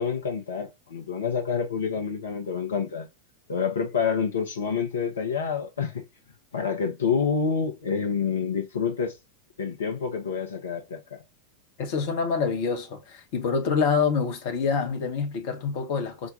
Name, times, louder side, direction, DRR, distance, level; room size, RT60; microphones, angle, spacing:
voice 1, 0.0-3.1 3.5-6.1 6.5-9.2 9.6-11.2, left 6 dB, 65° left, 0.8 m, -28 dB
voice 2, 11.8-16.3, left 5 dB, 50° left, 1.0 m, -26 dB
5.0 x 2.3 x 3.8 m
figure-of-eight pair, 90°, 0 cm